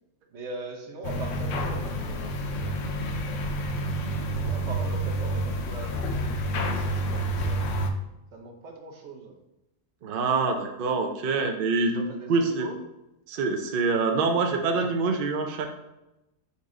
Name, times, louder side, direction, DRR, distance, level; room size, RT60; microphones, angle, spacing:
voice 1, 0.3-3.0 3.3-3.7 4.4-7.7 8.3-9.4 11.8-12.8, right 3 dB, 55° right, 2 dB, 0.9 m, -41 dB
sound 1, 1.0-7.9, right 1 dB, 70° left, 0.8 m, -29 dB
voice 2, 10.0-12.7 13.3-15.7, right 4 dB, 75° right, 4 dB, 0.5 m, -25 dB
4.2 x 2.6 x 4.7 m, 0.94 s
omnidirectional pair, 1.5 m